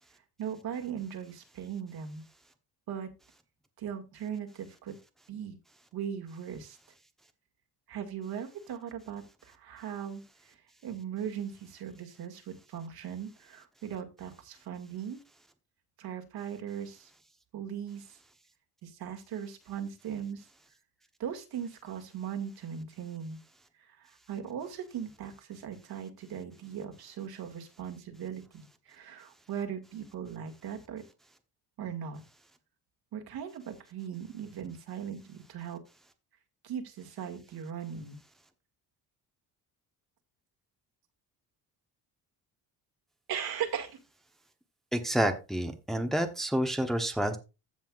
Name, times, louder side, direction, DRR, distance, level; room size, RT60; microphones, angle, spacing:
voice 1, 0.4-2.2 2.9-3.1 3.8-5.0 5.3-5.6 5.9-6.8 7.9-15.2 16.0-17.1 17.5-18.2 18.8-20.5 21.2-23.4 23.8-28.4 28.9-31.0 31.8-32.2 33.1-35.8 36.6-38.2 43.3-44.0 47.1-47.2, right 8 dB, 65° right, 5 dB, 2.1 m, -39 dB
voice 2, 44.9-47.4, right 1 dB, ahead, 6 dB, 0.9 m, -29 dB
15.5 x 5.7 x 2.4 m, 0.28 s
cardioid pair, 145°, 39 cm